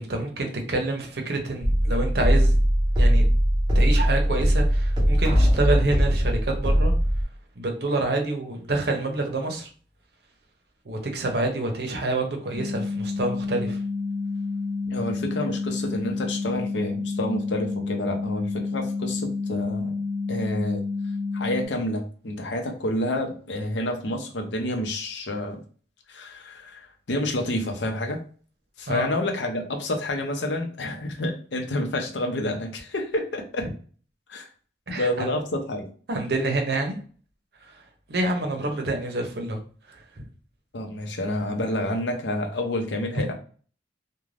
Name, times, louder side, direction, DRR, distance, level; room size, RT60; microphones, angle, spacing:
voice 1, 0.0-2.5 3.0-3.3 3.7-6.9 7.6-9.7 10.8-13.8 28.9-29.1 34.9-35.3 36.1-36.9 37.6-37.8 38.1-39.6 39.9-40.2 43.1-43.2, right 2 dB, 65° right, 3 dB, 0.7 m, -27 dB
sound 1, 1.6-7.2, equal, 25° right, 0.6 m, -20 dB
sound 2, 12.6-21.7, left 4 dB, 25° left, 0.8 m, -29 dB
voice 2, 14.8-20.0 20.3-20.9 21.3-25.6 26.1-28.2 28.8-33.7 34.3-34.5 34.9-35.8 40.7-43.3, left 1 dB, 80° left, 3 dB, 0.6 m, -29 dB
2.4 x 2.2 x 3.2 m, 0.42 s
head